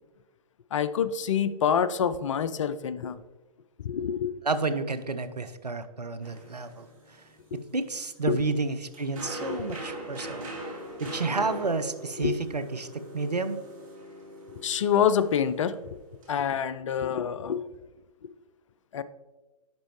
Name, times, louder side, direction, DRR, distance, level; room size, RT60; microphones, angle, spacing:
voice 1, 0.7-3.2 3.8-4.3 7.5-7.6 8.3-8.4 9.5-9.6 12.2-12.4 14.5-15.8 16.3-17.6 18.9-19.0, left 8 dB, 50° left, 14 dB, 0.4 m, -26 dB
voice 2, 4.4-6.9 7.7-10.5 11.0-13.6, right 3 dB, 85° right, 10 dB, 0.6 m, -30 dB
sound 1, 6.2-16.4, right 1 dB, 55° right, 2.4 m, -42 dB
10.5 x 5.1 x 3.1 m, 1.1 s
figure-of-eight pair, 115°, 20 cm